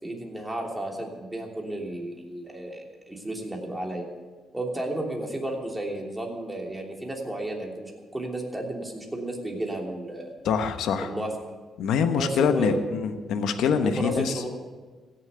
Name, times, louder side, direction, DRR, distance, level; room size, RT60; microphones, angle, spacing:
voice 1, 0.0-4.0 4.5-10.3 11.0-11.3 12.1-12.8 13.8-14.5, right 1 dB, 10° right, 0 dB, 3.1 m, -33 dB
voice 2, 10.4-11.1 11.8-14.3, left 6 dB, 80° left, 8 dB, 1.1 m, -24 dB
16.0 x 7.3 x 7.9 m, 1.3 s
cardioid pair, 90°, 0 cm